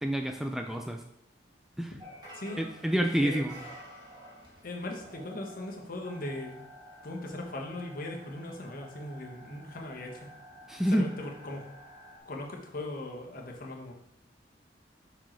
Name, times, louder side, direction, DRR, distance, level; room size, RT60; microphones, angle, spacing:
voice 1, 0.0-1.0 1.8-1.9 2.6-3.6 10.7-11.1, equal, ahead, 4 dB, 0.3 m, -28 dB
sound 1, 2.0-12.2, right 1 dB, 25° right, 2.2 m, -50 dB
voice 2, 4.6-6.6 7.0-10.1 10.9-11.7 12.2-13.9, left 1 dB, 50° left, 1 dB, 1.2 m, -39 dB
5.6 x 5.0 x 4.4 m, 0.85 s
head